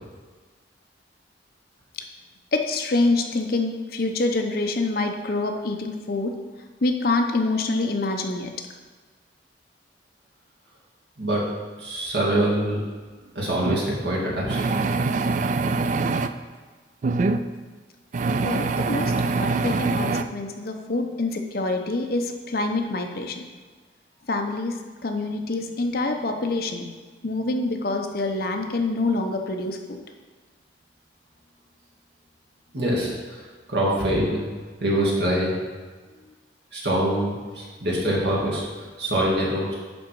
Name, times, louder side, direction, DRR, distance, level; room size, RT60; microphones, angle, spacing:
voice 1, 2.5-6.3 6.8-8.5 18.4-23.4 24.3-24.8 25.0-26.9 27.2-30.0, left 2 dB, 55° left, 4 dB, 0.8 m, -26 dB
voice 2, 11.8-12.8 13.4-14.7 32.7-33.4 33.7-34.4 34.8-35.6 36.7-38.7 39.0-39.7, right 1 dB, 70° right, -4 dB, 2.2 m, -24 dB
sound 1, 13.6-13.8 14.5-16.3 17.0-17.4 18.1-20.2, right 3 dB, 45° right, 0.3 m, -24 dB
10.5 x 3.9 x 4.6 m, 1.4 s
head